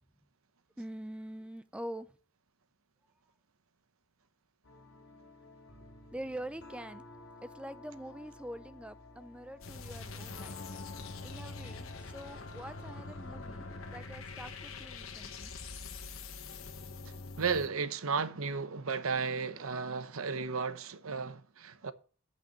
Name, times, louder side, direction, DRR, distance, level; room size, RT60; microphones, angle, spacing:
voice 1, 0.8-2.2 6.1-7.0 7.4-10.6 11.2-15.5, right 1 dB, 5° right, 0.5 m, -45 dB
sound 1, 4.6-14.1, left 3 dB, 60° left, 2.3 m, -52 dB
sound 2, 9.6-17.7, left 3 dB, 75° left, 1.2 m, -44 dB
voice 2, 17.4-21.9, right 5 dB, 85° right, 0.8 m, -34 dB
8.1 x 6.0 x 7.1 m
head